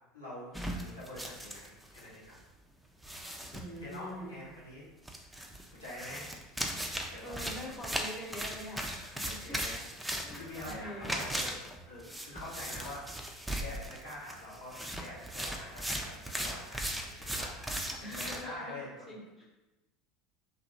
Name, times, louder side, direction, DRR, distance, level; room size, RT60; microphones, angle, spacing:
voice 1, 0.1-2.4 3.3-4.9 5.7-6.3 7.1-7.3 9.2-9.8 10.2-19.1, left 1 dB, 85° left, -10 dB, 0.9 m, -46 dB
sound 1, 0.5-2.1 2.4-2.5 3.0-4.0 5.1-18.4, equal, 5° right, 0.4 m, -38 dB
voice 2, 3.5-4.4 7.2-9.6 10.2-11.2 18.0-19.5, left 1 dB, 25° left, -2 dB, 0.8 m, -44 dB
2.7 x 2.5 x 2.5 m, 1.0 s
figure-of-eight pair, 75°, 0 cm